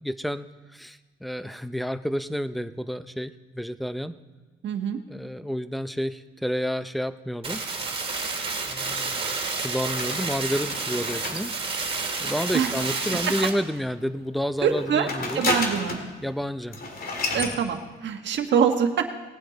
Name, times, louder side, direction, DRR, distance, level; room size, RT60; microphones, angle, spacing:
voice 1, 0.0-0.5 0.7-4.1 5.1-7.6 8.7-11.5 12.2-15.5 16.2-16.8, equal, ahead, 12 dB, 0.6 m, -30 dB
voice 2, 4.6-5.0 12.5-12.7 14.6-15.1 15.3-16.0 17.3-19.1, right 7 dB, 65° right, 5 dB, 1.4 m, -24 dB
sound 1, 7.4-13.5, right 4 dB, 30° right, 2.4 m, -30 dB
sound 2, 10.0-13.6 14.6-16.1 16.4-16.5 16.7-17.6, left 2 dB, 50° left, 2.5 m, -32 dB
19.5 x 8.9 x 4.0 m, 1.2 s
cardioid pair, 90°, 20 cm